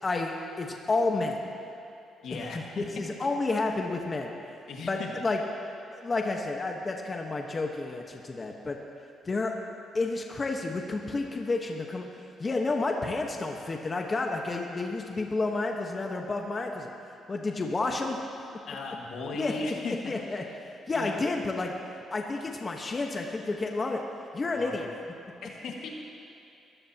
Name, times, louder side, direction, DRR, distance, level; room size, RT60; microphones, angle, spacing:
voice 1, 0.0-1.4 2.3-2.5 2.8-4.3 4.9-5.4 5.9-8.8 9.2-9.5 9.9-12.1 12.4-16.9 17.3-18.2 19.4-20.4 20.9-21.7 22.1-24.0 24.3-24.9, left 3 dB, 30° left, 1 dB, 1.3 m, -30 dB
voice 2, 2.2-3.0 4.7-5.1 18.7-20.6 20.9-21.2 24.5-24.9 25.4-25.9, left 3 dB, 70° left, 0 dB, 1.9 m, -37 dB
22.5 x 15.0 x 3.0 m, 2.7 s
cardioid pair, 90°, 0 cm